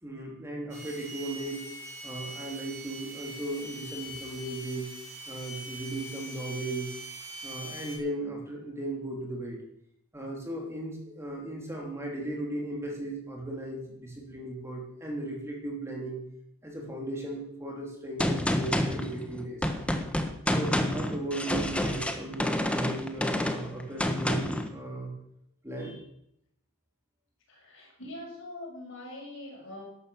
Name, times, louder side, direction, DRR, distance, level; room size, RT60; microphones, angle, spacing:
voice 1, 0.0-1.7 2.0-4.9 5.3-7.0 7.4-9.6 10.1-16.2 16.6-19.7 20.5-25.1 25.6-26.0, right 1 dB, 15° right, -1 dB, 3.4 m, -36 dB
sound 1, 0.7-8.0, right 1 dB, 35° right, 5.4 m, -42 dB
Gunshot gunfire, 18.2-24.7, left 1 dB, 5° left, 1.3 m, -29 dB
voice 2, 27.5-29.8, left 1 dB, 65° left, -1 dB, 6.7 m, -43 dB
13.0 x 11.5 x 7.2 m, 0.76 s
head